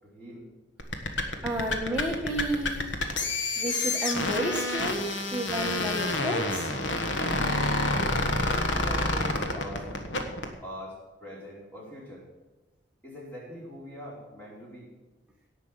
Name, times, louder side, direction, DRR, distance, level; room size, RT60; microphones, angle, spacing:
voice 1, 0.0-0.5 7.6-8.1 8.7-10.1 10.6-12.3 13.0-14.9, equal, 10° left, -5 dB, 4.9 m, -43 dB
sound 1, 0.8-10.5, left 2 dB, 80° left, 1.6 m, -28 dB
voice 2, 1.4-2.9 3.6-6.7, right 1 dB, 5° right, -2 dB, 1.3 m, -31 dB
17.5 x 6.0 x 7.6 m, 1.2 s
head